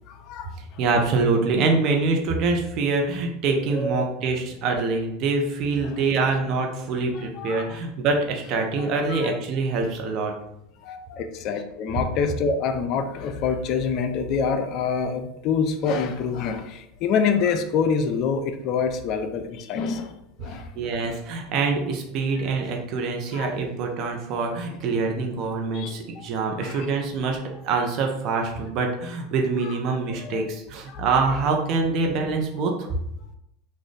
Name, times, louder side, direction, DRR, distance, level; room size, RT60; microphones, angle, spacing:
voice 1, 0.1-0.5 3.7-4.1 5.8-6.0 7.1-7.7 8.8-9.3 10.8-20.1 20.4-20.7 23.3-23.5 25.7-26.3 26.6-26.9 29.6-29.7 30.0-30.4 30.9-31.3, left 5 dB, 50° left, 8 dB, 0.4 m, -26 dB
voice 2, 0.8-10.3 20.4-27.4 27.6-32.9, right 4 dB, 50° right, 2 dB, 0.8 m, -25 dB
4.0 x 2.5 x 3.3 m, 0.83 s
hypercardioid pair, 90°, 0 cm